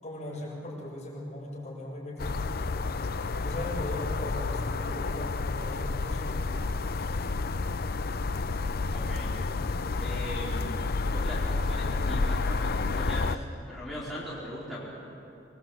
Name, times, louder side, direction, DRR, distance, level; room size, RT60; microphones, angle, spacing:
voice 1, 0.0-2.5 3.4-6.5, left 1 dB, 40° left, -4 dB, 7.2 m, -39 dB
sound 1, 2.2-13.4, left 3 dB, 55° left, 0.6 m, -30 dB
voice 2, 8.9-9.3 10.0-14.9, left 1 dB, ahead, -7 dB, 4.5 m, -40 dB
26.0 x 22.0 x 7.9 m, 2.7 s
head